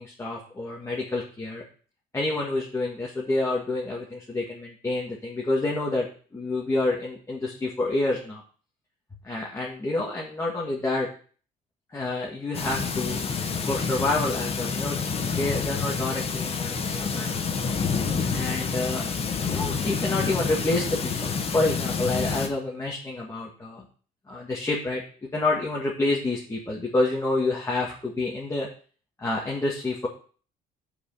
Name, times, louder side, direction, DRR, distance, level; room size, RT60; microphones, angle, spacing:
voice 1, 0.0-1.6 2.1-6.1 6.3-8.4 9.2-11.1 11.9-13.2 13.7-15.0 15.4-17.7 18.3-19.1 19.4-23.9 24.3-25.0 25.3-28.7 29.2-30.1, left 2 dB, 15° left, -3 dB, 1.9 m, -28 dB
sound 1, 12.5-22.5, left 5 dB, 35° left, 1.2 m, -28 dB
6.7 x 5.2 x 6.7 m, 0.42 s
cardioid pair, 110°, 17 cm